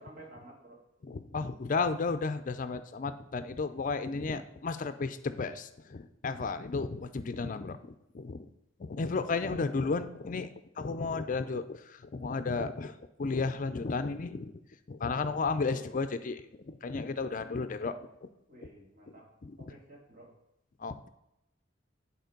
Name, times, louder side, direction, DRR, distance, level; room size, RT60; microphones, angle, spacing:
voice 1, 0.0-0.8 15.2-15.8 18.5-19.2 19.6-20.3, right 1 dB, 50° right, -2 dB, 2.9 m, -53 dB
voice 2, 1.1-8.4 8.8-10.5 10.8-12.9 13.2-14.5 14.9-18.1 19.4-19.5 20.8-21.1, left 4 dB, 45° left, 10 dB, 0.5 m, -33 dB
10.5 x 4.2 x 5.2 m, 0.88 s
head